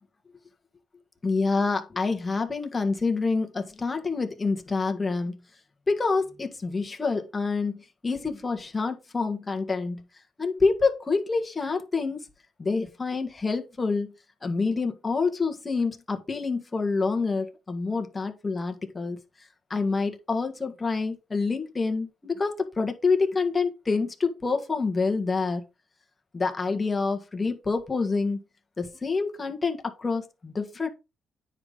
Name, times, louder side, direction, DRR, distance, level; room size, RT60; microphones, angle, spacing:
voice 1, 1.2-5.4 5.9-10.0 10.4-12.3 12.6-14.1 14.4-19.2 19.7-25.6 26.3-28.4 28.8-30.9, left 4 dB, 25° left, 1.8 m, -27 dB
9.5 x 5.1 x 4.0 m
cardioid pair, 90°, 0 cm